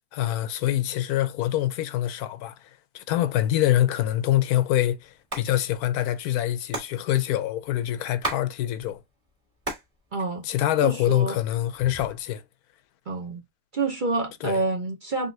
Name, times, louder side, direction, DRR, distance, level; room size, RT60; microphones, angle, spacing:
voice 1, 0.1-9.0 10.4-12.4 14.4-14.6, left 13 dB, 85° left, 1.1 m, -25 dB
Hands, 5.1-5.5 5.7-5.8 6.0-8.5 8.8-9.9 10.3-11.0 11.6-12.2, right 2 dB, 20° right, 1.7 m, -34 dB
voice 2, 10.1-10.4 10.8-11.4 13.1-13.4 13.7-15.3, right 3 dB, 45° right, 0.7 m, -28 dB
3.9 x 3.4 x 2.7 m
omnidirectional pair, 1.6 m